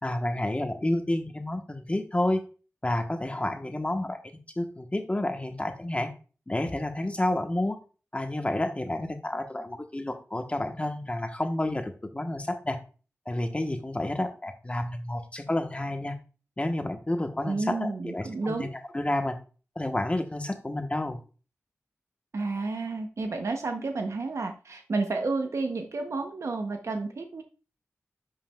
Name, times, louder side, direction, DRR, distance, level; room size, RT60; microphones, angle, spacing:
voice 1, 0.0-2.4 2.8-4.2 4.6-6.1 6.5-7.8 8.1-12.8 13.3-16.2 16.6-18.7 18.9-19.4 19.8-21.2, left 1 dB, 25° left, 6 dB, 1.0 m, -30 dB
voice 2, 17.5-18.7 22.3-27.4, right 3 dB, 75° right, 5 dB, 0.7 m, -31 dB
10.5 x 5.6 x 2.3 m, 0.35 s
wide cardioid pair, 70°, 5 cm